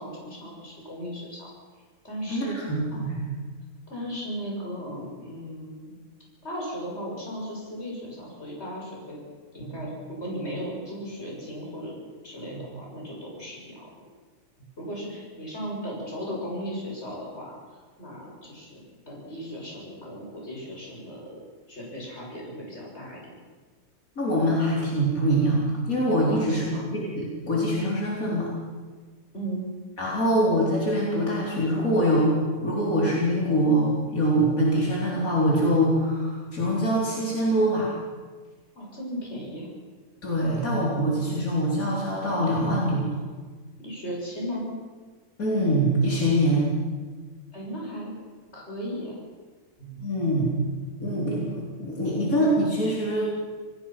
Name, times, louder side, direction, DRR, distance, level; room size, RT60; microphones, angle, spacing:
voice 1, 0.0-1.5 2.0-2.6 3.9-5.9 6.4-9.2 9.5-11.9 12.2-13.9 14.8-17.5 18.0-21.4 21.7-23.3 26.3-26.8 29.3-29.6 38.8-39.7 43.8-44.7 47.5-48.1 48.5-49.2, equal, 50° left, -3 dB, 7.2 m, -36 dB
voice 2, 2.3-3.4 9.6-9.8 12.5-12.6 24.2-26.7 26.9-28.5 30.0-37.9 40.2-43.1 45.4-46.7 49.8-50.6 51.0-53.2, equal, 80° left, -5 dB, 4.5 m, -24 dB
27.0 x 18.5 x 5.9 m, 1.4 s
omnidirectional pair, 1.5 m